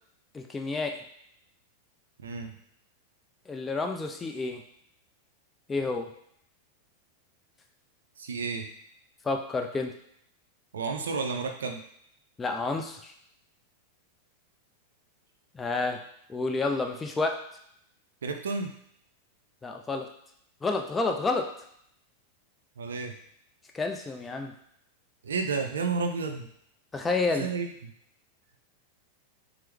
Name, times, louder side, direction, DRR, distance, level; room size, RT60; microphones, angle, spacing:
voice 1, 0.3-1.0 3.5-4.6 5.7-6.1 9.2-9.9 12.4-13.1 15.5-16.0 16.3-17.4 19.6-20.1 20.6-21.5 23.7-24.5 26.9-27.5, left 3 dB, 15° left, 3 dB, 0.4 m, -29 dB
voice 2, 2.2-2.5 8.2-8.7 10.7-11.8 18.2-18.7 22.8-23.2 25.2-26.5 27.4-27.9, right 4 dB, 65° right, 4 dB, 0.4 m, -31 dB
4.4 x 2.0 x 3.3 m, 0.70 s
figure-of-eight pair, 90°, 0 cm